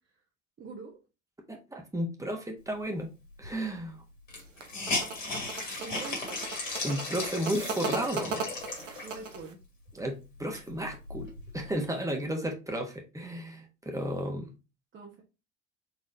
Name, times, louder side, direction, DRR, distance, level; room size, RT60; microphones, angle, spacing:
voice 1, 0.6-1.0 5.8-6.5 9.0-9.6 14.9-15.2, right 4 dB, 30° right, 1.2 m, -44 dB
voice 2, 1.5-3.1 3.4-4.0 6.8-8.4 9.9-14.5, right 1 dB, 10° right, 1.3 m, -33 dB
Hiss, 3.4-3.5 3.8-3.9 4.3-9.3 9.9-10.0 10.3-11.7, left 2 dB, 80° left, 2.0 m, -36 dB
sound 1, 4.4-9.5, right 4 dB, 80° right, 0.9 m, -37 dB
4.4 x 3.6 x 2.7 m
figure-of-eight pair, 65°, 37 cm